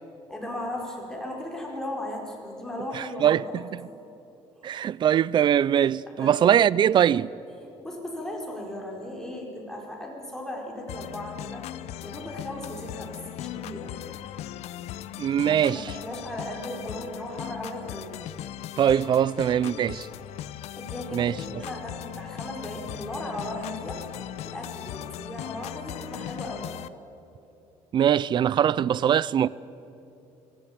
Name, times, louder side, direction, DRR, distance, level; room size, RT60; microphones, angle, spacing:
voice 1, 0.3-4.0 4.6-4.8 6.1-6.5 7.8-11.6 12.0-14.0 15.6-18.2 20.8-26.7, left 1 dB, 5° left, 4.8 m, -37 dB
voice 2, 2.9-3.8 4.6-7.3 15.2-15.8 18.8-20.1 21.1-21.4 27.9-29.5, right 9 dB, 40° right, 0.5 m, -22 dB
sound 1, 10.9-26.9, left 12 dB, 70° left, 0.8 m, -38 dB
26.0 x 17.0 x 8.8 m
cardioid pair, 125°, 12 cm